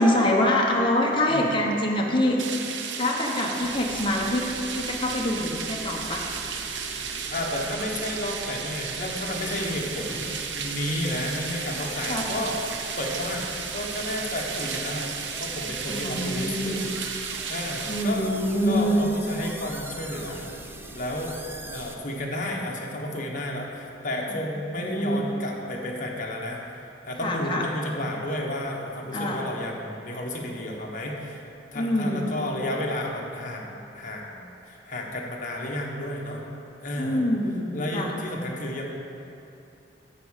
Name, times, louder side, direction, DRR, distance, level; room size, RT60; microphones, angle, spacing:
voice 1, 0.0-2.4 3.0-4.4 4.7-6.2 12.0-12.3 15.9-16.8 17.9-19.1 24.3-24.5 24.7-25.3 27.2-27.7 29.1-29.4 31.7-32.3 37.0-38.1, left 1 dB, 30° left, -2 dB, 1.0 m, -25 dB
sound 1, 2.4-18.0, right 6 dB, 85° right, 0.7 m, -34 dB
sound 2, 3.6-21.9, equal, 65° left, 2.7 m, -45 dB
voice 2, 7.3-12.6 13.0-15.1 15.4-16.8 17.5-18.3 18.6-20.5 20.9-21.4 21.7-31.4 31.7-36.5 36.8-37.2 37.7-38.8, left 1 dB, 50° left, -1 dB, 1.4 m, -32 dB
sound 3, 9.3-22.0, right 2 dB, 15° right, 0.6 m, -42 dB
11.5 x 4.9 x 7.4 m, 2.8 s
head